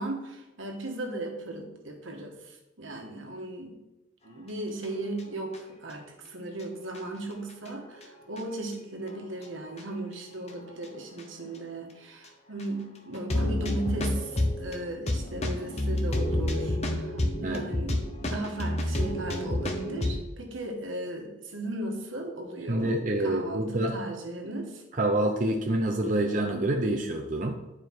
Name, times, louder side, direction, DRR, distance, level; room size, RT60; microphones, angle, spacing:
voice 1, 0.0-3.8 4.2-24.8, right 2 dB, 80° right, 3 dB, 1.4 m, -37 dB
sound 1, 4.8-5.6 5.9-6.0 6.6-6.7 6.9-7.0 7.5-8.4 9.1-9.4 9.7-9.8 10.5-10.9 11.2-11.3 11.5-11.6 12.2-12.3 12.6-12.7 13.1-20.2, left 1 dB, 35° left, 0.8 m, -30 dB
voice 2, 22.7-24.0 25.0-27.6, right 1 dB, 40° right, 1 dB, 0.7 m, -27 dB
9.5 x 4.9 x 4.6 m, 0.99 s
head